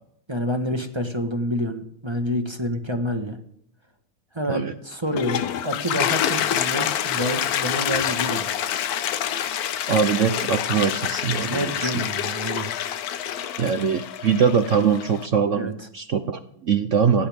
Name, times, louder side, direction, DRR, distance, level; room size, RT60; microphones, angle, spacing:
voice 1, 0.3-3.4 4.3-8.5 11.3-12.7 13.2-13.4 15.5-15.7, equal, 15° right, 6 dB, 1.1 m, -28 dB
Toilet flush, 4.9-15.3, left 10 dB, 60° left, 1.0 m, -27 dB
voice 2, 9.9-12.0 13.6-17.3, right 6 dB, 65° right, 10 dB, 0.7 m, -22 dB
19.0 x 17.0 x 3.6 m, 0.70 s
omnidirectional pair, 2.2 m